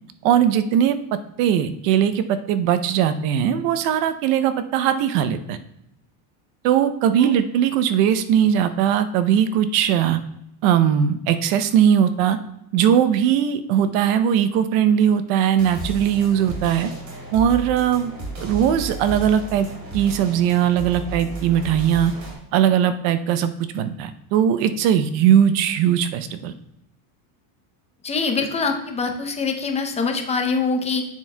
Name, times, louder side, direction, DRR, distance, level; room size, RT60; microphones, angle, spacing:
voice 1, 0.2-1.0 1.4-5.6 6.6-10.2 10.6-12.4 12.7-16.9 17.3-18.1 18.4-19.7 19.9-22.1 22.5-26.5, right 9 dB, 70° right, 11 dB, 0.7 m, -19 dB
sound 1, 15.6-22.3, right 2 dB, 40° right, 2.8 m, -33 dB
voice 2, 28.0-31.0, left 4 dB, 15° left, 5 dB, 0.6 m, -24 dB
9.4 x 7.4 x 2.2 m, 0.78 s
cardioid pair, 150°, 44 cm